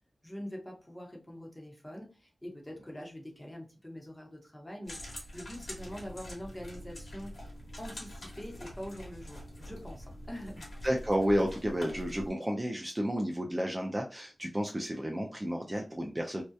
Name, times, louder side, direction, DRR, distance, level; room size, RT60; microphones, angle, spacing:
voice 1, 0.2-10.7, equal, 10° left, 0 dB, 0.8 m, -44 dB
sound 1, 4.9-12.3, equal, 70° left, 1.2 m, -45 dB
voice 2, 10.8-16.4, equal, 15° right, 1 dB, 0.4 m, -31 dB
2.6 x 2.2 x 2.2 m, 0.36 s
wide cardioid pair, 100°, 0 cm